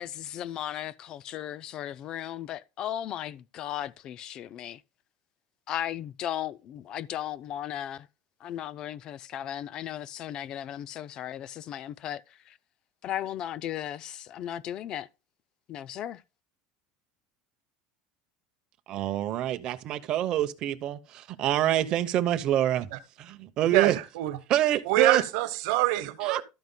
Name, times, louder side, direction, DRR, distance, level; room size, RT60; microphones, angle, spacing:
voice 1, 0.0-4.8 5.7-8.1 8.4-12.6 13.0-15.1 15.7-16.2, left 11 dB, 35° left, 0.3 m, -36 dB
voice 2, 18.9-22.9 23.2-24.0 24.5-25.2 26.2-26.4, right 12 dB, 40° right, 0.8 m, -26 dB
voice 3, 23.7-24.4 24.9-26.4, right 16 dB, 75° right, 1.0 m, -26 dB
12.5 x 9.2 x 2.2 m
cardioid pair, 165°, 2 cm